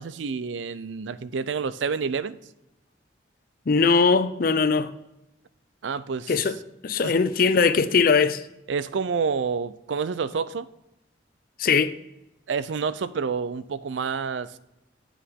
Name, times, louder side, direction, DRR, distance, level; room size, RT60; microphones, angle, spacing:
voice 1, 0.0-2.4 5.8-6.3 7.0-7.2 8.7-10.7 12.5-14.6, right 5 dB, 85° right, 0.5 m, -28 dB
voice 2, 3.7-4.9 6.3-6.6 6.8-8.4 11.6-11.9, left 5 dB, 50° left, 0.5 m, -20 dB
8.5 x 7.0 x 3.6 m
head